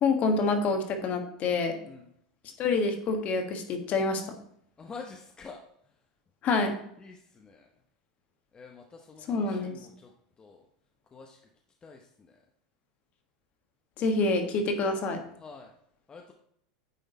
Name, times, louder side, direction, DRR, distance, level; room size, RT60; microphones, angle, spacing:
voice 1, 0.0-1.8 2.6-4.2 6.4-6.7 9.3-9.8 14.0-15.2, left 3 dB, 45° left, 5 dB, 1.4 m, -27 dB
voice 2, 4.8-5.6 8.6-8.7 9.1-9.2 11.1-11.2 11.8-12.0 15.4-15.7 16.1-16.3, left 4 dB, 25° left, 2 dB, 0.8 m, -43 dB
9.3 x 3.8 x 4.1 m, 0.71 s
hypercardioid pair, 110°, 4 cm